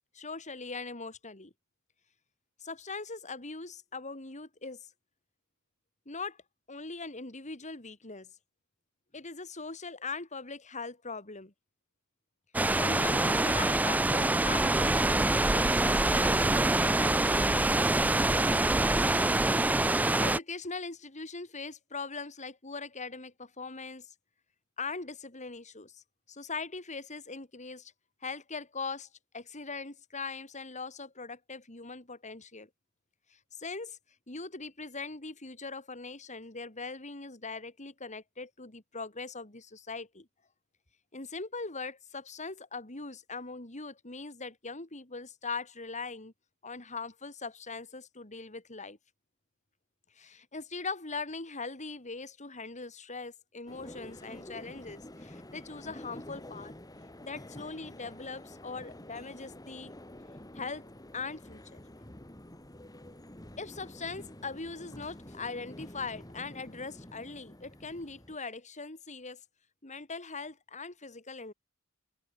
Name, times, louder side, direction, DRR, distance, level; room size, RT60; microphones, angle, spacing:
voice 1, 0.1-1.5 2.6-4.9 6.1-6.4 6.7-8.3 9.1-11.5 12.7-18.0 20.2-24.1 24.8-27.9 28.2-29.1 29.3-32.7 33.3-34.0 34.3-40.3 41.1-46.3 46.6-49.0 50.2-56.7 57.2-59.9 60.5-61.8 63.6-69.4 69.8-71.5, left 4 dB, 35° left, 3.4 m, -41 dB
sound 1, 12.5-20.4, right 2 dB, 5° right, 0.4 m, -25 dB
sound 2, 53.7-68.4, left 1 dB, 15° left, 2.7 m, -48 dB
head